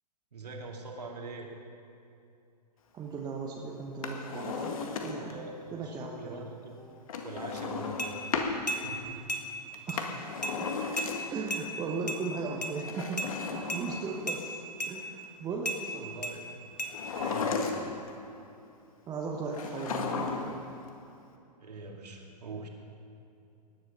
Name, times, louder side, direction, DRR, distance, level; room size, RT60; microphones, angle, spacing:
voice 1, 0.3-1.5 5.1-7.0 7.2-8.2 8.7-9.2 16.0-16.5 17.2-17.8 21.6-22.7, right 3 dB, 70° right, 1 dB, 2.5 m, -43 dB
voice 2, 2.9-5.4 5.7-6.4 9.9-10.7 11.3-16.2 19.1-20.5, right 4 dB, 20° right, 0 dB, 1.2 m, -37 dB
Drawer open or close, 3.9-5.4 7.1-8.6 9.7-11.5 12.8-14.4 16.9-18.1 19.5-20.7 20.9-21.0, left 5 dB, 55° left, 1.8 m, -35 dB
sound 1, 8.0-8.1 8.7-8.8 9.3-9.4 9.9-10.0 10.4-10.6 11.0-11.1 11.5-11.6 12.1-12.2 12.6-12.7 13.2-13.3 13.7-13.8 14.3-14.4 14.8-14.9 15.6-15.8 16.2-16.3 16.8-16.9, right 1 dB, 75° left, 1.9 m, -33 dB
18.5 x 10.5 x 5.6 m, 2.7 s
figure-of-eight pair, 110°, 21 cm